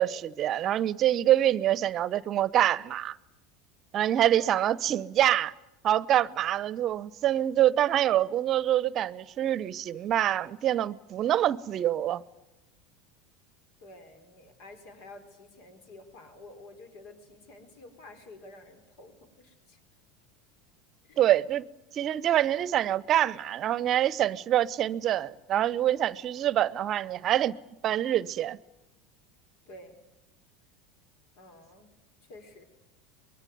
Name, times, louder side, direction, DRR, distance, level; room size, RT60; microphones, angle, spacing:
voice 1, 0.0-3.2 3.9-5.5 5.8-12.2 21.2-21.7 21.9-27.6 27.8-28.6, right 12 dB, 45° right, 0.8 m, -25 dB
voice 2, 13.8-19.8 21.0-21.5 29.7-30.0 31.4-31.9 32.2-32.6, left 2 dB, 60° left, 4.2 m, -50 dB
24.5 x 22.0 x 9.5 m
hypercardioid pair, 85°, 0 cm